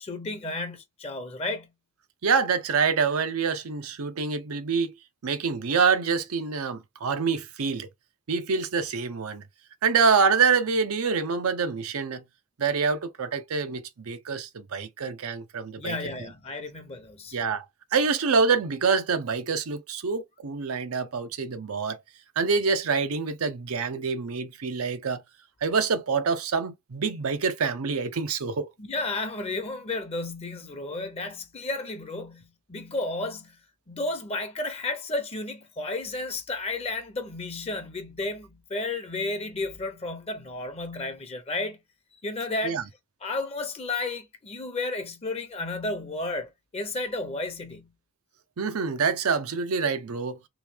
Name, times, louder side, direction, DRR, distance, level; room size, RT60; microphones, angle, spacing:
voice 1, 0.0-1.7 15.8-17.4 28.8-33.6 33.9-41.8 42.2-42.8 43.2-47.9, left 2 dB, 30° left, 0.7 m, -32 dB
voice 2, 2.2-4.9 5.2-7.9 8.3-9.4 9.8-12.2 12.6-16.0 17.3-17.6 17.9-22.0 22.4-25.2 25.6-28.7 42.6-42.8 48.6-50.4, right 5 dB, 80° right, 0.6 m, -26 dB
3.1 x 3.0 x 3.5 m
head